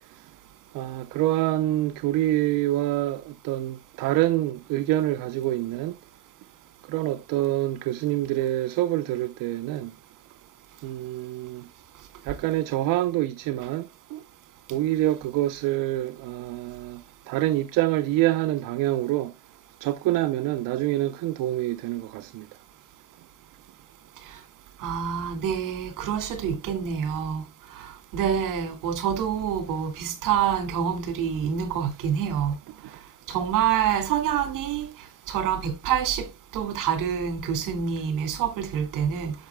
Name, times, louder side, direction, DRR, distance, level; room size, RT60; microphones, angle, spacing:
voice 1, 0.7-6.0 6.9-9.9 10.8-11.7 12.3-14.2 14.7-19.3 19.8-22.5 32.8-33.0, right 15 dB, 90° right, 0.6 m, -26 dB
voice 2, 24.8-27.4 27.7-32.5 33.3-34.9 35.3-36.3 36.5-39.3, right 8 dB, 75° right, 2.2 m, -27 dB
10.5 x 7.3 x 2.2 m
cardioid pair, 170°, 32 cm